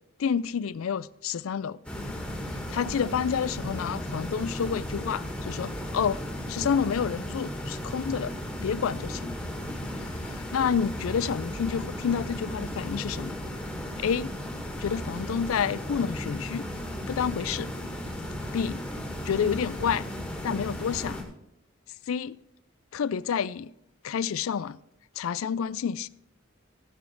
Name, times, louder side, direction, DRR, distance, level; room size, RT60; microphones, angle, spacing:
voice 1, 0.2-1.8 2.7-6.2 6.5-8.3 8.6-9.4 10.0-13.3 14.0-14.3 14.8-16.6 17.1-17.7 18.5-18.8 19.2-20.1 20.4-21.2 22.1-22.4 22.9-23.7 24.0-24.8 25.2-26.1, left 7 dB, 85° left, 0.4 m, -29 dB
sound 1, 1.8-21.2, equal, 5° left, 1.8 m, -35 dB
16.0 x 6.4 x 4.5 m
head